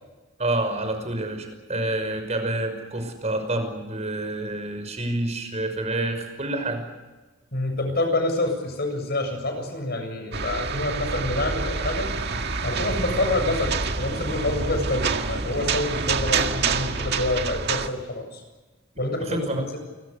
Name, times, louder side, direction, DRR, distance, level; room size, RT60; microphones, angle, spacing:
voice 1, 0.4-6.8 19.2-19.7, right 2 dB, 35° right, 7 dB, 5.9 m, -28 dB
voice 2, 7.5-12.1 12.6-18.4 19.0-19.8, left 2 dB, 55° left, 6 dB, 7.6 m, -27 dB
sound 1, 10.3-17.9, right 4 dB, 55° right, 1.9 m, -27 dB
29.5 x 24.5 x 6.8 m, 1.2 s
head